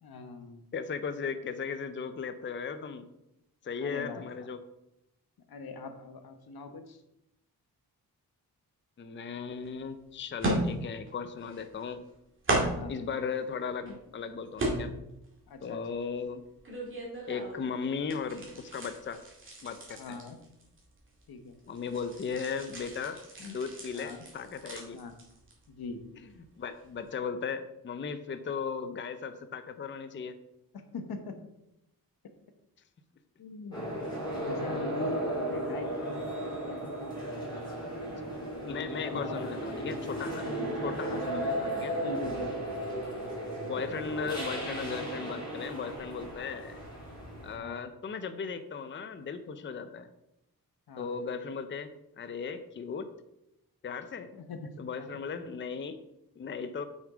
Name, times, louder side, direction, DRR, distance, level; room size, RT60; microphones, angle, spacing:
voice 1, 0.0-0.7 3.8-4.5 5.5-7.0 12.7-13.0 15.5-15.8 20.0-20.4 21.3-21.6 23.9-24.3 24.9-25.1 25.7-26.0 30.7-31.4 33.4-33.9 34.2-36.9 39.1-39.6 40.3-42.7 47.5-47.8 50.9-51.1 54.3-54.7 55.0-55.1, left 3 dB, 90° left, 7 dB, 1.2 m, -42 dB
voice 2, 0.7-3.1 3.6-4.6 9.0-12.0 12.9-14.9 15.6-16.4 17.3-19.2 19.6-20.2 21.7-25.0 26.6-30.3 38.3-40.4 40.8-42.0 43.6-46.8 47.4-50.1 51.0-53.1 53.8-54.3 54.8-56.0 56.4-56.8, left 5 dB, 35° left, 10 dB, 0.5 m, -37 dB
sound 1, 9.6-9.7 10.4-11.1 11.4-12.1 12.4-13.0 13.5-14.1 14.6-15.3 15.6-17.7 18.0-21.2 21.5-25.7 26.1-26.3 26.8-26.9, right 1 dB, 35° right, 2.4 m, -35 dB
sound 2, 33.7-47.5, right 1 dB, 10° left, 3.0 m, -35 dB
7.2 x 6.3 x 4.9 m, 0.86 s
wide cardioid pair, 175°, 36 cm